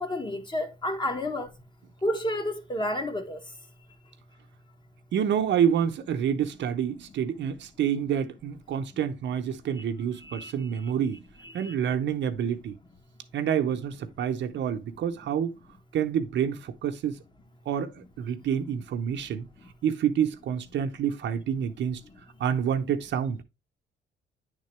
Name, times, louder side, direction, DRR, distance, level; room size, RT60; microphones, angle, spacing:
voice 1, 0.0-1.5 2.0-3.4 10.2-10.5 11.4-11.7, left 1 dB, 25° left, 1.2 m, -30 dB
voice 2, 5.1-11.2 11.5-12.8 13.3-15.5 15.9-17.2 17.7-19.5 19.8-22.0 22.4-23.4, right 8 dB, 65° right, 0.8 m, -28 dB
9.6 x 3.7 x 3.2 m
cardioid pair, 90°, 20 cm